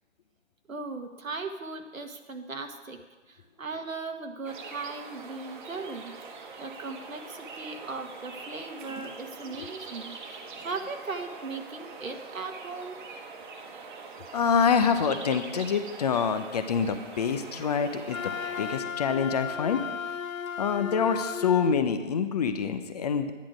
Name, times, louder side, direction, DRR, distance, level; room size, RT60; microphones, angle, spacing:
voice 1, 0.7-3.0 3.3-6.1 6.6-13.0, right 3 dB, 85° right, 5 dB, 1.5 m, -38 dB
sound 1, 4.4-18.8, right 4 dB, 40° right, 1.3 m, -43 dB
voice 2, 14.3-19.8 20.6-23.3, left 6 dB, 30° left, 8 dB, 0.7 m, -26 dB
Wind instrument woodwind instrument, 18.1-21.8, left 7 dB, 85° left, 0.6 m, -34 dB
11.5 x 10.5 x 5.0 m, 1.3 s
figure-of-eight pair, 140°, 39 cm